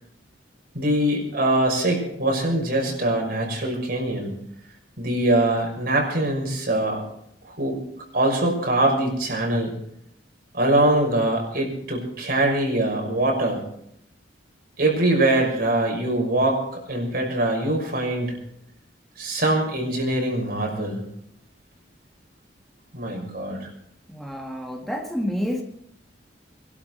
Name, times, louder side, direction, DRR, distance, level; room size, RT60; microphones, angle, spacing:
voice 1, 0.7-4.4 5.0-7.0 7.4-7.8 8.1-9.7 10.5-13.6 14.8-18.3 19.2-21.0 22.9-23.7, right 1 dB, 60° right, 1 dB, 5.9 m, -23 dB
voice 2, 24.1-25.6, equal, ahead, 2 dB, 2.0 m, -29 dB
22.5 x 12.5 x 4.6 m, 0.73 s
head